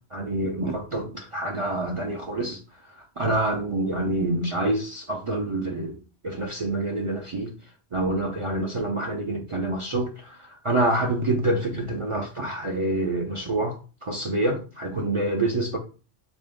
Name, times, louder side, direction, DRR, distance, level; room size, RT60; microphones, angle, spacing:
voice 1, 0.1-2.6 3.2-6.0 6.2-7.5 7.9-13.8 14.0-15.8, right 2 dB, 45° right, 0.4 m, -27 dB
3.7 x 2.6 x 3.4 m
omnidirectional pair, 1.1 m